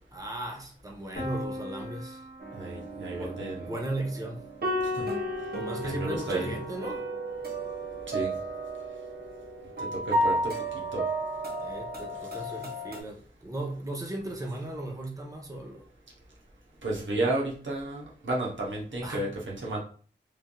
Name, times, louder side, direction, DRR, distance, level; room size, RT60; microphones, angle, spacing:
voice 1, 0.1-2.3 3.2-4.4 5.5-7.0 11.6-15.9 19.0-19.3, right 1 dB, 20° right, 0 dB, 0.7 m, -36 dB
Piano, 1.2-6.9, left 1 dB, 55° left, 0.9 m, -43 dB
sound 1, 2.4-13.0, right 1 dB, 55° right, 0.7 m, -33 dB
voice 2, 2.5-3.7 4.8-5.1 5.8-6.5 8.1-8.3 9.8-10.5 10.9-11.0 16.8-19.8, right 2 dB, 90° right, -4 dB, 0.9 m, -32 dB
3.2 x 2.6 x 2.2 m, 0.42 s
wide cardioid pair, 45°, 19 cm